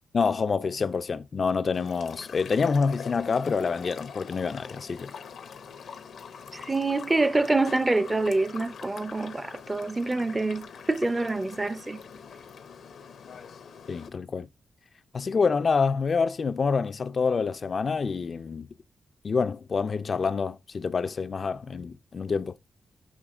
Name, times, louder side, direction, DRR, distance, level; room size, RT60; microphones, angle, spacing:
voice 1, 0.1-5.1 13.9-14.5 15.1-18.7 19.2-22.5, left 5 dB, 50° left, 0.3 m, -27 dB
sound 1, 1.7-14.1, left 6 dB, 80° left, 0.7 m, -44 dB
voice 2, 6.5-12.0, right 2 dB, 25° right, 0.4 m, -26 dB
6.3 x 2.9 x 2.4 m
cardioid pair, 85°, 0 cm